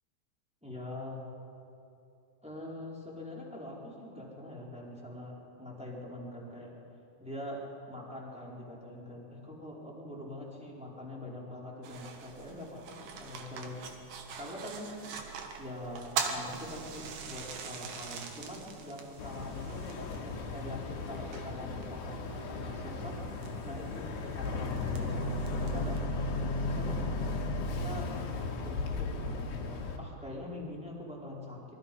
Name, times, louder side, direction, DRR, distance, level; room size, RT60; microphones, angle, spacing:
voice 1, 0.6-1.2 2.4-6.7 7.2-13.8 14.4-14.9 15.6-23.2 23.6-26.0 26.6-27.1 27.7-28.1 28.6-31.8, left 1 dB, ahead, -4 dB, 4.1 m, -43 dB
sound 1, 11.8-26.0, right 5 dB, 60° right, 3.0 m, -43 dB
Boat Water vehicle, 19.2-30.0, left 2 dB, 85° left, 4.4 m, -35 dB
26.5 x 23.0 x 5.6 m, 2.8 s
omnidirectional pair, 5.1 m